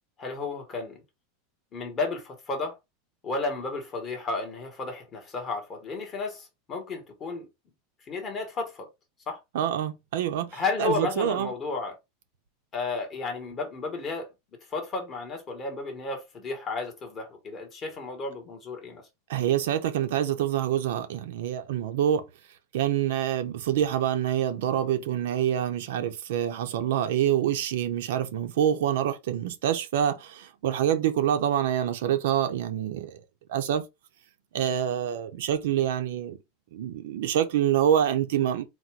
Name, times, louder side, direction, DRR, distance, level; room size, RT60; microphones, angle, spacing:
voice 1, 0.2-1.0 1.7-2.8 3.2-7.5 8.1-8.9 9.3-9.4 10.5-12.0 12.7-14.3 14.7-19.0, left 3 dB, 20° left, 1.1 m, -33 dB
voice 2, 9.5-11.5 19.3-22.3 22.7-33.2 33.5-33.8 34.5-36.4 36.7-38.6, right 10 dB, 65° right, 0.7 m, -26 dB
4.1 x 2.2 x 4.5 m
supercardioid pair, 180°, 0 cm